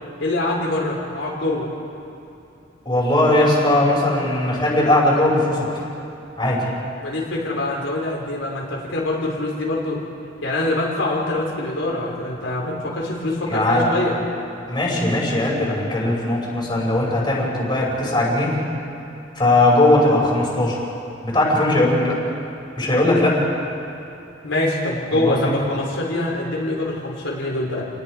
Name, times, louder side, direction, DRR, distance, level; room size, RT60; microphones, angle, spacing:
voice 1, 0.2-1.7 7.0-10.0 10.4-14.2 24.4-27.8, left 2 dB, 80° left, -3 dB, 3.8 m, -24 dB
voice 2, 2.9-5.8 6.4-6.7 13.5-13.9 14.7-18.6 19.4-20.8 21.2-22.2 22.8-23.4 25.1-25.5, left 1 dB, 25° left, -3 dB, 5.4 m, -19 dB
29.5 x 20.0 x 5.0 m, 2.8 s
head